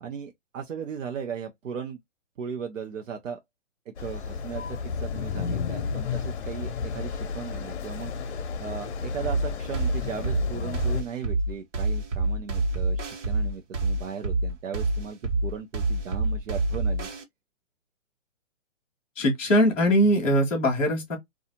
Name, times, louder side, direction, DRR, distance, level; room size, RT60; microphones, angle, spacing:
voice 1, 0.0-2.0 2.4-3.4 3.9-8.1 8.6-17.1, right 7 dB, 80° right, 0.7 m, -37 dB
sound 1, 4.0-11.0, left 5 dB, 60° left, 0.6 m, -32 dB
sound 2, 9.2-17.2, right 2 dB, 65° right, 1.1 m, -27 dB
voice 2, 19.2-21.2, equal, 10° left, 0.5 m, -21 dB
2.6 x 2.4 x 2.7 m
hypercardioid pair, 165°, 38 cm